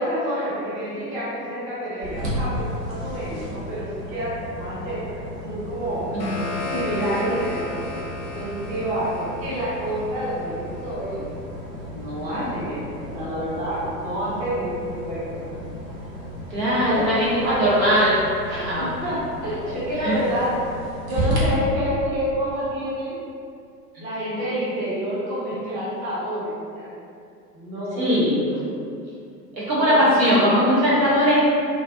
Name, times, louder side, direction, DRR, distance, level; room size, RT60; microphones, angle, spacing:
voice 1, 0.0-6.1 6.7-7.8 8.3-11.2 11.9-15.4 16.8-17.8 18.5-20.6 21.0-23.2 24.0-26.9 27.5-28.0 28.4-28.6 29.8-30.0 31.1-31.3, equal, 15° right, -10 dB, 0.5 m, -28 dB
sound 1, 2.0-21.4, equal, 55° right, 0.8 m, -34 dB
sound 2, 5.8-10.8, left 2 dB, 40° left, 0.4 m, -34 dB
voice 2, 16.5-18.2 18.5-18.9 20.0-20.1 28.0-28.3 29.5-31.4, equal, 85° right, -8 dB, 1.0 m, -20 dB
2.3 x 2.0 x 2.6 m, 2.4 s
figure-of-eight pair, 95°, 50 cm